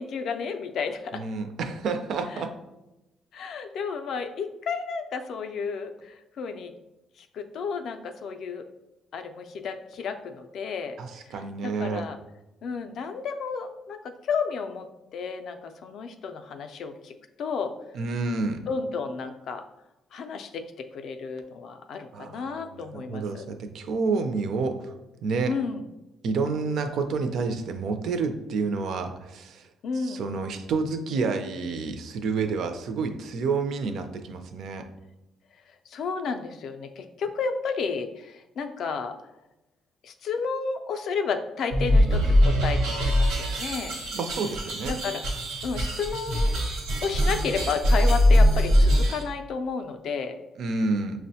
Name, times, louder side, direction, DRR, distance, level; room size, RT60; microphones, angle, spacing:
voice 1, 0.0-1.2 2.3-2.4 3.3-6.7 7.3-8.6 9.1-11.0 11.6-12.2 12.6-17.8 18.7-19.6 20.1-20.6 20.9-23.5 25.5-25.8 29.8-30.3 35.9-39.2 40.0-44.0 44.9-45.2 45.6-46.5 47.0-50.4, left 5 dB, 55° left, 7 dB, 0.3 m, -32 dB
voice 2, 1.1-2.5 11.0-12.0 17.9-18.6 22.1-24.8 25.2-25.6 26.2-29.6 29.9-34.9 44.1-45.0 50.6-51.2, right 4 dB, 60° right, 7 dB, 0.4 m, -29 dB
sound 1, 41.7-49.2, equal, 90° right, 1.0 m, -22 dB
5.8 x 2.1 x 2.7 m, 0.97 s
cardioid pair, 165°, 0 cm